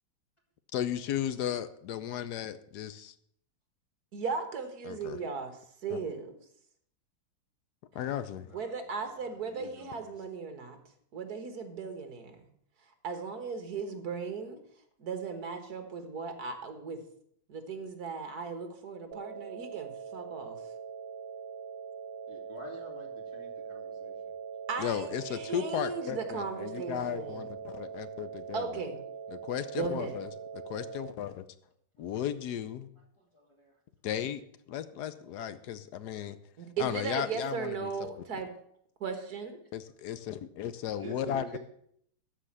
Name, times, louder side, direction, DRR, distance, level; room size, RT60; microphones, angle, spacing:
voice 1, 0.7-3.1 4.8-5.2 5.9-6.0 7.9-8.5 24.8-28.7 29.3-30.3 30.7-31.4 32.0-32.9 34.0-34.4 34.7-36.4 36.8-38.1 39.7-41.5, left 10 dB, 65° left, 13 dB, 1.1 m, -35 dB
voice 2, 4.1-6.4 8.5-10.8 11.1-12.4 13.0-14.6 15.0-17.0 17.5-20.6 24.7-27.5 28.5-29.0 29.8-30.2 36.6-38.5 39.0-39.6, right 5 dB, 50° right, 7 dB, 1.8 m, -37 dB
voice 3, 8.4-10.2 22.3-24.4 32.0-32.1 33.2-33.8 41.0-41.6, right 2 dB, 15° left, -1 dB, 2.4 m, -49 dB
sound 1, 19.1-31.1, right 6 dB, 85° right, 0.7 m, -42 dB
13.0 x 4.9 x 7.4 m, 0.68 s
omnidirectional pair, 2.2 m